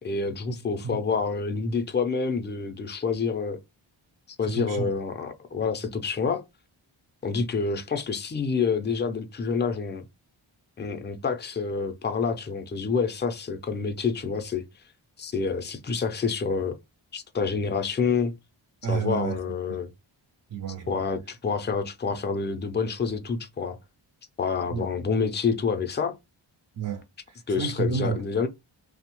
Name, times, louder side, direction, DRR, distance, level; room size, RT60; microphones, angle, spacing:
voice 1, 0.0-3.6 4.4-6.4 7.2-10.0 10.8-14.6 15.2-16.8 17.1-18.3 18.9-19.9 20.9-23.8 24.4-26.1 27.5-28.5, left 5 dB, 25° left, 0.4 m, -28 dB
voice 2, 4.4-4.9 18.8-19.4 20.5-21.0 24.7-24.9 26.8-28.2, right 6 dB, 45° right, 0.4 m, -30 dB
2.7 x 2.1 x 2.9 m
wide cardioid pair, 70°, 49 cm